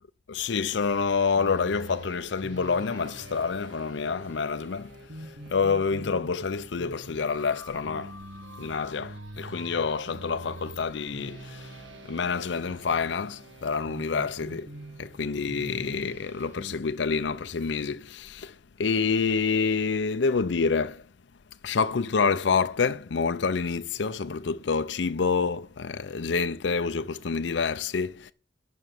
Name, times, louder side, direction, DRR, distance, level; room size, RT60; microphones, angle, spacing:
voice 1, 0.3-4.9 5.5-8.2 8.6-11.8 12.1-14.7 15.0-18.5 18.8-21.0 21.6-28.3, left 5 dB, 70° left, 0.6 m, -27 dB
sound 1, 0.8-16.8, right 1 dB, 80° right, 1.6 m, -45 dB
11.0 x 6.2 x 7.5 m
head